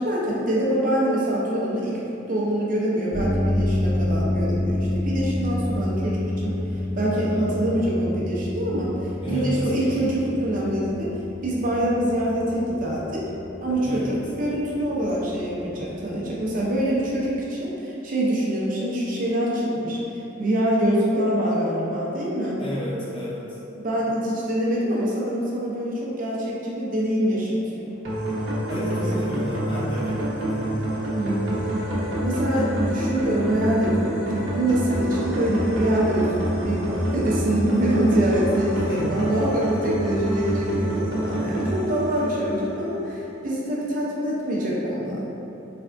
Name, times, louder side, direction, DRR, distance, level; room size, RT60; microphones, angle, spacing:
voice 1, 0.0-2.0 2.3-6.6 6.9-11.1 11.4-13.3 13.6-20.0 20.4-22.6 23.8-28.0 31.2-31.6 32.2-45.3, right 1 dB, 45° right, -5 dB, 0.5 m, -25 dB
sound 1, 3.1-17.4, left 1 dB, 90° left, 1.3 m, -29 dB
voice 2, 9.2-9.6 13.8-14.2 22.6-23.6 28.7-30.8 38.8-39.3, equal, 25° left, -8 dB, 0.6 m, -31 dB
sound 2, 28.0-43.1, right 1 dB, 70° right, 0.8 m, -27 dB
3.4 x 3.3 x 2.5 m, 2.9 s
head